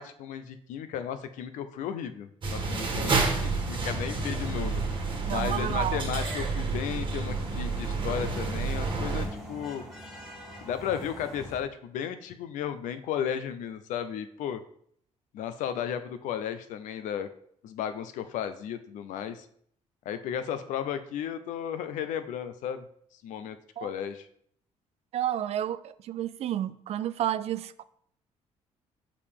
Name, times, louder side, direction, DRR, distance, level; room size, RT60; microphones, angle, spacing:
voice 1, 0.0-4.8 5.3-9.8 10.6-14.6 15.3-17.3 17.6-19.5 20.1-22.9 23.2-24.3, left 9 dB, 85° left, 10 dB, 0.6 m, -34 dB
sound 1, 2.4-9.3, right 4 dB, 40° right, 1.4 m, -29 dB
sound 2, 3.4-11.6, left 1 dB, ahead, 1.8 m, -45 dB
voice 2, 5.3-6.0 23.8-23.9 25.1-27.8, right 11 dB, 55° right, 16 dB, 0.4 m, -31 dB
6.6 x 4.8 x 3.6 m, 0.66 s
cardioid pair, 115°, 13 cm